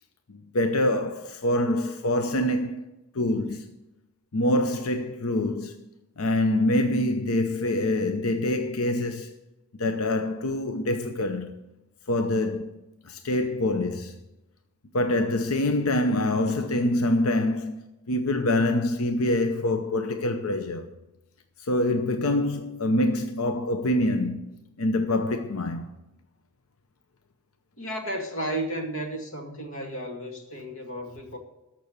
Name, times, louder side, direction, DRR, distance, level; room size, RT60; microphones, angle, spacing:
voice 1, 0.3-2.8 3.1-3.7 4.3-5.8 6.2-9.3 9.7-11.5 12.1-12.7 13.1-14.2 14.9-17.7 18.1-20.9 21.6-24.5 24.8-25.9, left 1 dB, 90° left, 0.8 m, -25 dB
voice 2, 27.8-31.4, right 1 dB, 65° left, 2.3 m, -33 dB
14.0 x 6.3 x 8.0 m
head